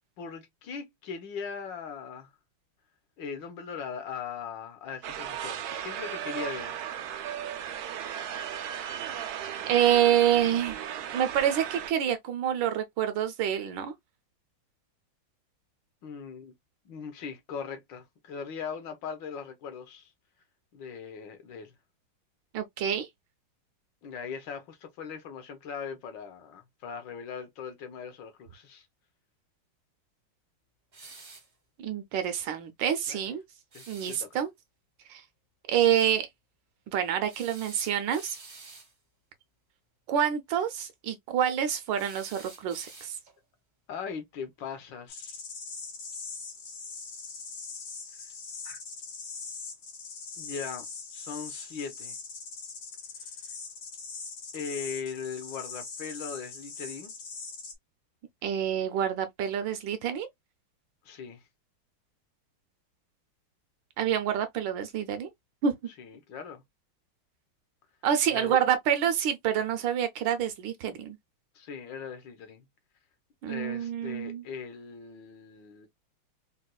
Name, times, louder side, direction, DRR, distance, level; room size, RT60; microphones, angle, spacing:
voice 1, 0.2-2.3 3.2-6.7 16.0-16.5 16.8-20.1 20.7-21.7 24.0-28.9 33.1-33.3 33.7-34.4 43.9-45.4 48.6-48.8 50.4-50.8 51.1-52.2 53.2-53.3 54.5-57.1 61.0-61.4 66.0-66.6 68.3-68.6 71.5-72.6 73.5-75.9, left 6 dB, 70° left, 1.3 m, -39 dB
sound 1, 5.0-11.9, right 9 dB, 90° right, 0.8 m, -36 dB
voice 2, 9.7-10.8 11.1-13.9 22.5-23.1 31.8-33.4 33.9-34.5 35.1-35.2 35.7-36.3 36.9-38.4 40.1-43.2 58.4-60.3 64.0-65.3 65.6-65.7 68.0-71.2 73.4-74.4, right 9 dB, 75° right, 1.2 m, -27 dB
sound 2, 30.9-31.5 33.7-34.3 37.3-38.9 42.0-43.4, right 3 dB, 45° right, 0.6 m, -49 dB
sound 3, 45.1-57.7, left 4 dB, 90° left, 2.0 m, -41 dB
4.1 x 2.2 x 2.2 m
omnidirectional pair, 2.2 m